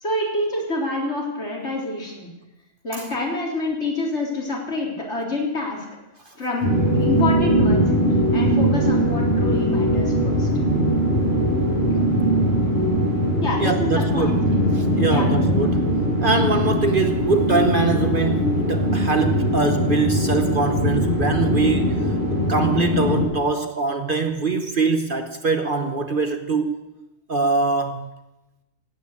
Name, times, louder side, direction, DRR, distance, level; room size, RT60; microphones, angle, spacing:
voice 1, 0.0-2.3 2.8-5.9 6.4-7.9 8.3-10.5 13.4-14.4 15.1-15.3, left 2 dB, 55° left, 4.1 m, -27 dB
sound 1, 6.6-23.2, equal, 30° left, 7.5 m, -21 dB
voice 2, 13.6-14.4 14.9-22.1 22.5-26.8 27.3-28.1, right 3 dB, 45° right, 1.2 m, -23 dB
17.0 x 9.1 x 8.4 m
omnidirectional pair, 1.4 m